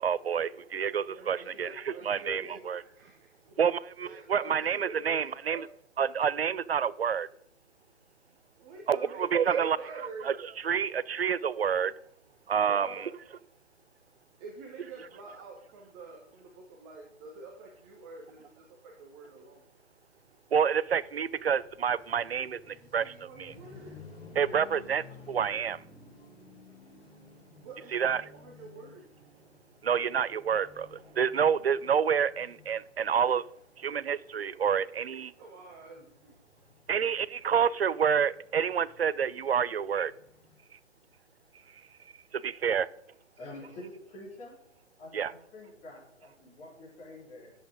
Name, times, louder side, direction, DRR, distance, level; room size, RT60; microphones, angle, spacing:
voice 1, 0.0-2.8 3.6-5.7 6.0-7.3 8.9-9.8 10.2-11.9 12.5-13.1 20.5-23.1 23.4-23.5 24.4-25.8 27.9-28.2 29.8-33.4 33.8-35.3 36.9-40.1 42.3-42.9 45.1-45.3, right 7 dB, 55° right, 0.5 m, -28 dB
voice 2, 1.1-3.6 4.0-5.6 8.6-10.4 12.7-13.0 14.4-19.6 22.7-24.0 27.6-29.1 35.4-36.4, right 3 dB, 15° right, 1.1 m, -47 dB
sound 1, 20.8-40.5, left 3 dB, 55° left, 4.3 m, -55 dB
voice 3, 43.4-44.5 45.0-47.5, left 2 dB, 15° left, 4.0 m, -47 dB
10.5 x 7.9 x 5.0 m
figure-of-eight pair, 135°, 37 cm